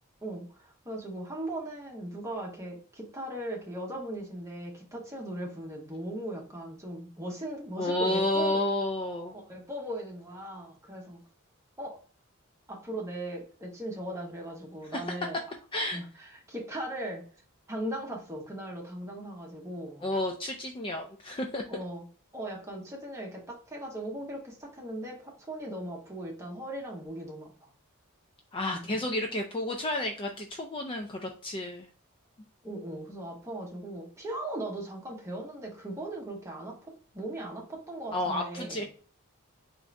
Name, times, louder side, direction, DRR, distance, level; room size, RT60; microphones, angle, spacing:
voice 1, 0.2-8.6 9.3-11.2 11.8-12.0 12.7-15.4 15.9-17.2 17.7-20.1 21.7-22.1 22.3-27.7 28.7-28.8 32.6-38.8, right 1 dB, 15° right, -2 dB, 0.9 m, -38 dB
voice 2, 7.8-9.3 14.9-15.2 15.7-16.0 20.0-21.6 28.5-31.9 38.1-38.8, left 1 dB, 25° left, 3 dB, 0.3 m, -31 dB
3.6 x 2.5 x 3.2 m, 0.42 s
head